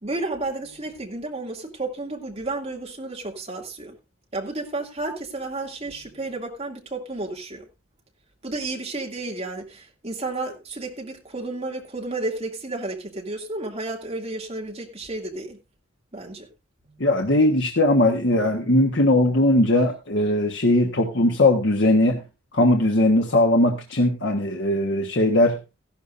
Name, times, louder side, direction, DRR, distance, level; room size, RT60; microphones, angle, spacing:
voice 1, 0.0-3.9 4.3-7.6 8.4-15.6 16.1-16.5, right 2 dB, 30° right, 2.5 m, -32 dB
voice 2, 17.0-22.2 22.5-25.6, left 1 dB, 55° left, 1.4 m, -19 dB
15.0 x 12.0 x 2.6 m
head